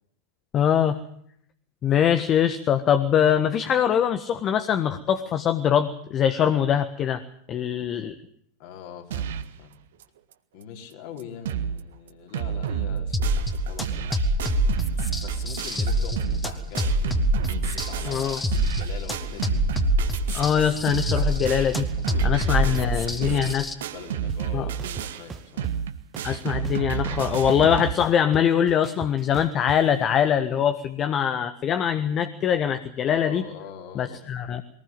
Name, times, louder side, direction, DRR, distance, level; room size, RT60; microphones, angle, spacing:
voice 1, 0.5-1.0 1.8-7.2 7.5-8.1 18.0-18.4 20.3-21.9 22.2-23.6 24.5-24.7 26.2-33.4 33.9-34.6, left 9 dB, 30° left, 10 dB, 1.5 m, -23 dB
voice 2, 8.6-9.7 10.5-14.2 15.2-18.3 18.6-19.6 22.0-23.5 23.9-25.7 33.1-34.3, left 7 dB, 45° left, 3 dB, 4.7 m, -42 dB
sound 1, 9.1-9.6 10.0-10.1 10.3-10.4 10.9-11.0 11.2-11.8 12.1-27.9, right 9 dB, 60° right, 1.7 m, -31 dB
sound 2, 13.1-23.7, equal, 10° left, 2.6 m, -26 dB
sound 3, 24.3-24.4 24.8-25.7 26.1-27.2 27.5-29.8, right 6 dB, 20° right, 1.5 m, -38 dB
23.0 x 19.5 x 7.5 m, 0.68 s
figure-of-eight pair, 90°, 0 cm